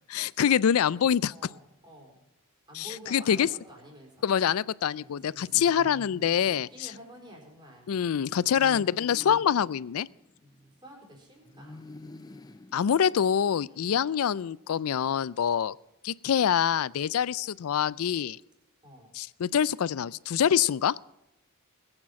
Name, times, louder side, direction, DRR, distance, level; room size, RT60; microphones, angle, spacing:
voice 1, 0.1-1.3 2.8-3.5 4.2-6.9 7.9-10.1 12.7-15.7 16.0-18.4 19.1-20.9, left 8 dB, 80° left, 22 dB, 0.4 m, -25 dB
voice 2, 1.3-2.2 2.7-4.5 5.2-5.8 6.4-8.0 10.4-11.8 13.7-14.0 18.8-19.1, equal, 20° right, 0 dB, 4.1 m, -50 dB
sound 1, 5.0-7.1 8.2-10.9 11.5-13.7, left 2 dB, 20° left, 0.5 m, -49 dB
20.0 x 8.9 x 5.8 m, 0.91 s
head